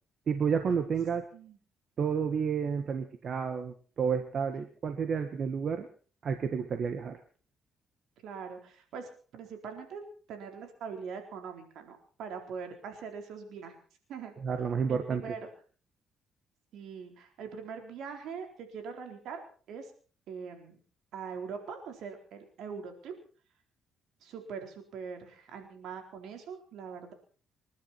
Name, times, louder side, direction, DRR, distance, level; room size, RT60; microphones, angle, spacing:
voice 1, 0.3-1.3 2.0-5.9 6.2-7.2 14.4-15.4, right 6 dB, 55° right, 7 dB, 1.7 m, -30 dB
voice 2, 8.2-10.0 10.3-13.8 14.1-14.3 14.9-15.5 16.7-19.4 19.7-19.9 20.3-20.8 21.1-23.1 24.2-27.1, right 6 dB, 80° right, 5 dB, 4.1 m, -42 dB
27.0 x 11.5 x 4.4 m, 0.40 s
cardioid pair, 90°, 0 cm